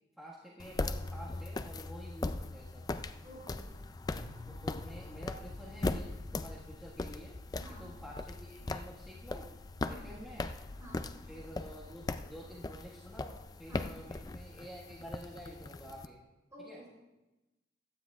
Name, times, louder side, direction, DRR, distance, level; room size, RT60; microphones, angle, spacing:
voice 1, 0.2-2.9 4.5-7.4 7.7-9.5 9.9-10.5 11.3-16.2 16.6-16.8, equal, ahead, -7 dB, 1.6 m, -49 dB
sound 1, 0.6-16.1, left 2 dB, 20° left, 0.3 m, -40 dB
voice 2, 3.2-3.8 7.6-7.9 9.8-10.1 10.8-11.1 13.7-13.9 16.5-16.9, equal, 20° right, -5 dB, 3.4 m, -51 dB
Piano, 4.2-9.8, left 3 dB, 70° left, 1.6 m, -59 dB
16.5 x 12.5 x 2.4 m, 1.0 s
head